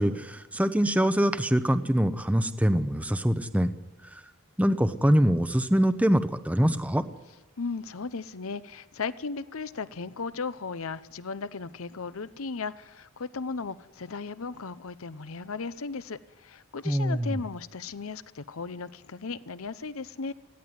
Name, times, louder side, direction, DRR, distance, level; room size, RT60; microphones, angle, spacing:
voice 1, 0.0-3.7 4.1-4.2 4.6-7.0 16.8-17.4, equal, 5° right, 11 dB, 0.8 m, -24 dB
voice 2, 7.6-20.3, left 4 dB, 70° left, 15 dB, 0.8 m, -36 dB
20.0 x 15.5 x 9.7 m, 1.1 s
head